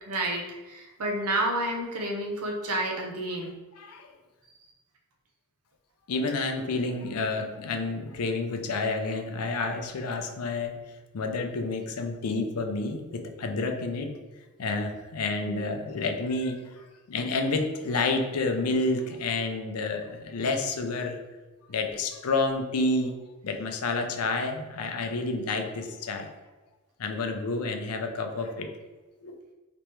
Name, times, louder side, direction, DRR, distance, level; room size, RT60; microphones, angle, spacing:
voice 1, 0.0-3.5 15.4-15.6, right 1 dB, 80° right, 1 dB, 0.7 m, -30 dB
voice 2, 3.8-4.1 6.1-10.8 11.1-14.1 14.6-21.2 21.7-23.1 23.4-26.3 27.0-28.7 29.2-29.4, left 3 dB, 75° left, 4 dB, 0.5 m, -29 dB
3.3 x 3.0 x 3.0 m, 1.2 s
head